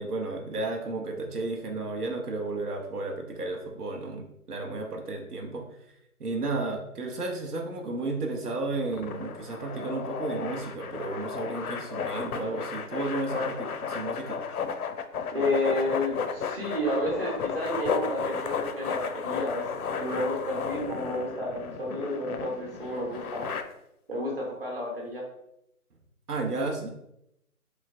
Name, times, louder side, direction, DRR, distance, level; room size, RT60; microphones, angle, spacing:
voice 1, 0.0-5.7 6.2-13.5 13.9-14.4 26.3-26.9, right 2 dB, 85° right, 1 dB, 0.8 m, -33 dB
sound 1, 8.9-23.6, left 6 dB, 75° left, 0.5 m, -33 dB
voice 2, 15.3-23.5 24.1-25.2, left 1 dB, 40° right, -2 dB, 0.9 m, -31 dB
3.1 x 3.0 x 2.5 m, 0.82 s
figure-of-eight pair, 170°, 45 cm